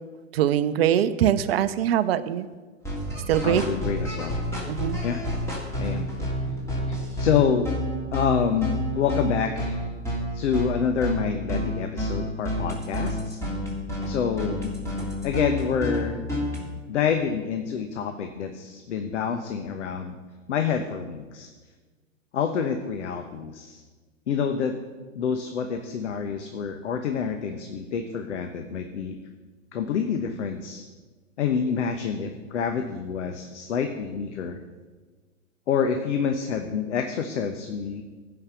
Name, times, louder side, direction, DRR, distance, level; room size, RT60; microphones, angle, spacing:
voice 1, 0.3-2.5 3.3-3.6 4.7-5.0, right 10 dB, 45° right, 14 dB, 0.7 m, -22 dB
sound 1, 2.8-16.6, equal, 5° left, 3.2 m, -29 dB
voice 2, 3.4-4.4 5.0-5.2 5.8-6.1 6.9-7.7 8.1-9.9 10.3-13.4 14.0-14.7 15.2-16.2 16.9-20.1 20.5-21.5 22.3-23.8 24.3-24.7 25.1-29.2 29.7-30.8 31.4-34.6 35.7-38.0, left 7 dB, 60° left, 6 dB, 1.1 m, -27 dB
15.0 x 5.8 x 6.9 m, 1.3 s
figure-of-eight pair, 105°, 41 cm